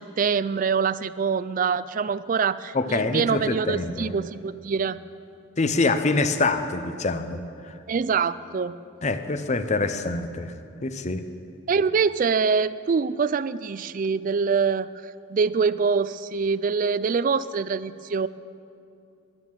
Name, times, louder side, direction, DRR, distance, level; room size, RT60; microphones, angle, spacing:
voice 1, 0.0-5.0 7.9-8.7 11.7-14.9 15.3-18.3, right 5 dB, 40° right, 16 dB, 0.3 m, -24 dB
voice 2, 2.7-4.1 5.6-7.7 9.0-10.5 10.8-11.2, left 3 dB, 35° left, 10 dB, 0.7 m, -25 dB
12.0 x 11.5 x 7.4 m, 2.5 s
head